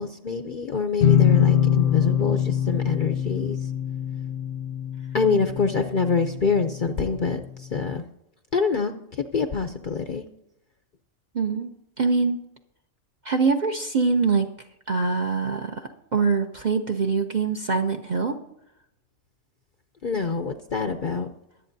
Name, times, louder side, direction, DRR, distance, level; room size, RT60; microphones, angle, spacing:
voice 1, 0.0-3.6 5.1-8.0 8.5-10.2 20.0-21.3, left 5 dB, 50° left, 6 dB, 0.6 m, -26 dB
sound 1, 1.0-6.6, left 9 dB, 75° left, 1.0 m, -23 dB
voice 2, 11.3-11.7 12.0-12.4 13.2-14.5 14.9-18.4, right 4 dB, 45° right, 4 dB, 0.6 m, -24 dB
23.0 x 8.3 x 2.7 m, 0.82 s
omnidirectional pair, 1.4 m